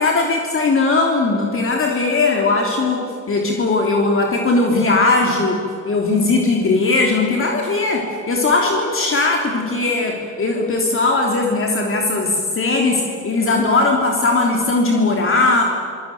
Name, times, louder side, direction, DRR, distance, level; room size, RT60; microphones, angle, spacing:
voice 1, 0.0-5.6 5.8-15.6, left 3 dB, 45° left, 0 dB, 3.4 m, -18 dB
25.5 x 19.0 x 9.4 m, 2.4 s
cardioid pair, 90°, 30 cm